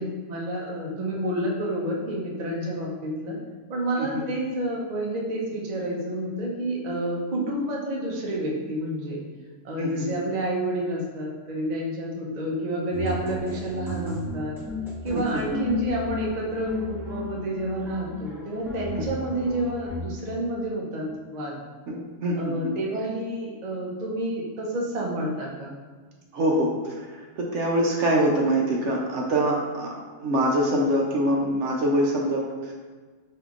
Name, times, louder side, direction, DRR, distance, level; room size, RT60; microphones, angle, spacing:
voice 1, 0.0-3.4 3.7-9.2 9.6-14.6 15.0-21.1 21.3-21.5 22.4-25.7, right 1 dB, 40° right, -2 dB, 0.6 m, -29 dB
voice 2, 9.8-10.2 15.1-15.6 19.0-19.1 21.9-22.7 26.3-29.9 30.2-32.7, right 1 dB, 70° right, -1 dB, 0.9 m, -25 dB
sound 1, 12.9-20.0, left 3 dB, 5° right, 0.5 m, -34 dB
5.3 x 2.8 x 2.4 m, 1.5 s
omnidirectional pair, 1.4 m